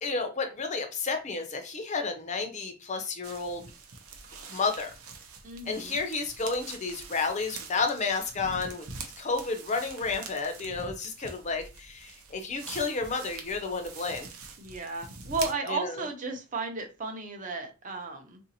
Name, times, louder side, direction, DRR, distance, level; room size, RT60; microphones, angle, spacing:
voice 1, 0.0-3.6 4.5-4.9 5.7-8.8 9.2-14.3 15.7-15.9, left 4 dB, 35° left, 5 dB, 0.5 m, -31 dB
sound 1, 3.2-15.5, right 4 dB, 85° right, 0.7 m, -44 dB
voice 2, 5.4-6.0 14.6-18.4, right 3 dB, 35° right, 4 dB, 0.6 m, -34 dB
3.8 x 2.6 x 2.7 m, 0.30 s
head